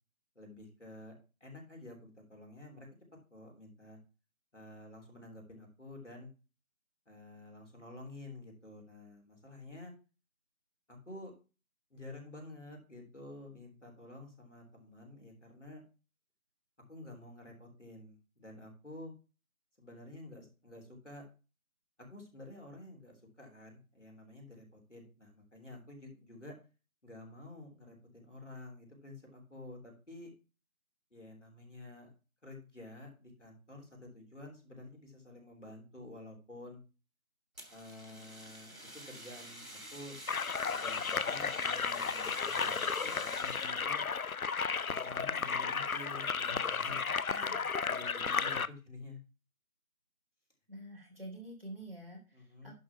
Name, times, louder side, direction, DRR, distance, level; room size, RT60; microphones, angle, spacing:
voice 1, 0.3-1.1 1.4-2.9 3.3-4.0 4.5-6.3 7.1-9.9 10.9-11.3 11.9-15.8 16.9-19.1 19.8-21.2 22.0-26.5 27.0-30.3 31.1-32.1 32.4-36.8 37.7-38.7 39.1-40.2 40.7-44.0 44.8-49.2 52.3-52.7, left 2 dB, 55° left, 1 dB, 3.4 m, -50 dB
Fire, 37.6-43.8, right 1 dB, 85° right, 3.2 m, -48 dB
sound 1, 40.3-48.7, left 5 dB, 80° left, 0.7 m, -34 dB
voice 2, 50.7-52.7, right 1 dB, 40° right, -1 dB, 3.0 m, -47 dB
11.0 x 4.1 x 5.7 m, 0.32 s
figure-of-eight pair, 180°, 42 cm